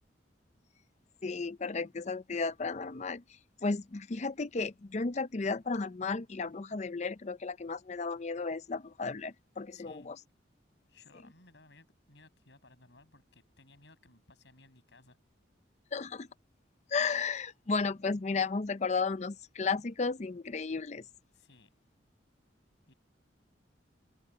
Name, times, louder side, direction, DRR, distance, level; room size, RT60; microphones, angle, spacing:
voice 1, 1.2-3.2 3.6-10.2 15.9-16.3 16.9-21.0, left 4 dB, 35° left, 0.5 m, -34 dB
voice 2, 9.7-10.1 10.9-15.2 21.3-21.7 22.9-23.0, left 2 dB, 65° left, 6.5 m, -60 dB
open air
head